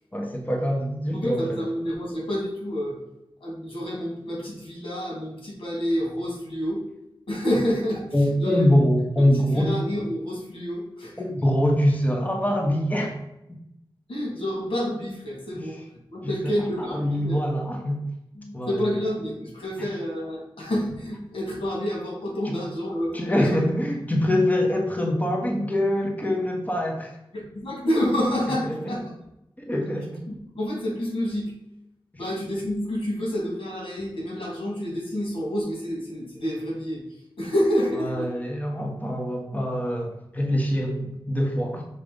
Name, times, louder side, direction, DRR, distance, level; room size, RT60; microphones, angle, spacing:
voice 1, 0.1-1.6 8.1-9.7 11.2-13.2 15.5-15.8 16.2-16.5 16.8-18.0 18.5-18.9 19.8-19.9 22.4-22.6 23.1-27.2 28.6-28.9 29.6-30.2 38.0-41.8, left 1 dB, 20° left, 0 dB, 1.3 m, -24 dB
voice 2, 1.1-3.0 3.4-6.8 7.3-8.0 8.4-8.7 9.5-11.2 14.1-15.8 16.1-17.4 18.3-23.6 27.3-29.0 30.3-31.5 32.2-37.0 37.4-38.3, equal, 85° left, -3 dB, 2.6 m, -28 dB
6.7 x 3.3 x 5.2 m, 0.84 s
wide cardioid pair, 65°, 9 cm